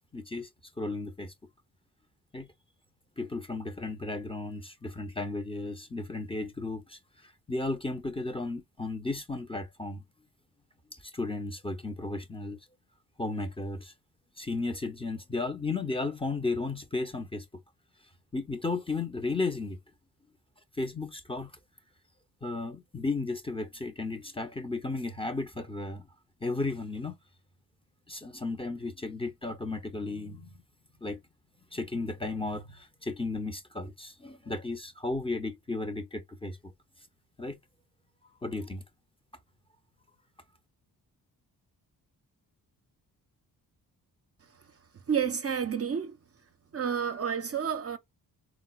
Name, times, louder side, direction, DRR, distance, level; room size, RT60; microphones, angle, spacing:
voice 1, 0.1-0.5 0.8-1.3 2.3-2.5 3.2-10.0 10.9-12.6 13.2-13.9 14.4-17.5 18.3-19.8 20.8-21.5 22.4-26.1 26.4-27.2 28.1-30.5 31.0-31.2 31.7-36.6 37.4-37.6 38.2-38.8, left 3 dB, 15° left, 0.6 m, -34 dB
voice 2, 45.1-46.2 46.7-48.0, right 7 dB, 35° right, 0.5 m, -30 dB
3.6 x 2.1 x 2.3 m
supercardioid pair, 50°, 41 cm